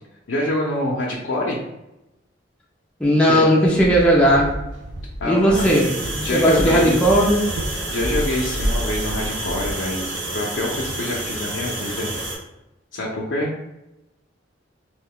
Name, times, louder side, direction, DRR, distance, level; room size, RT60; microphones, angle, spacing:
voice 1, 0.3-1.6 3.3-3.4 5.2-5.7 6.2-7.0 7.9-10.1 10.3-12.1 12.9-13.5, left 1 dB, 80° left, -3 dB, 0.5 m, -25 dB
voice 2, 3.0-4.5 5.2-7.4, equal, 5° left, -4 dB, 0.5 m, -17 dB
Walk footsteps, 3.7-9.8, equal, 85° right, 0.5 m, -30 dB
sound 1, 5.5-12.3, right 1 dB, 65° right, 1.0 m, -29 dB
2.5 x 2.2 x 3.6 m, 0.92 s
head